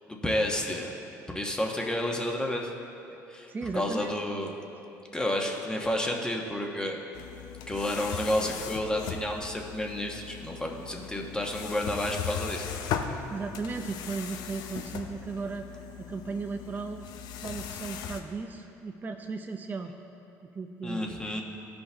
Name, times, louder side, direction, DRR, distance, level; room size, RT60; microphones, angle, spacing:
voice 1, 0.1-0.9 1.3-2.7 3.3-4.5 5.1-7.0 7.7-12.7 20.8-21.4, left 1 dB, 10° left, 1 dB, 1.2 m, -30 dB
voice 2, 3.5-4.2 13.3-15.7 16.0-17.1 17.3-19.9 20.4-21.2, right 4 dB, 25° right, 4 dB, 0.5 m, -36 dB
sound 1, 7.1-18.2, left 8 dB, 70° left, 0.6 m, -38 dB
14.5 x 5.3 x 3.4 m, 3.0 s
supercardioid pair, 85°, 7 cm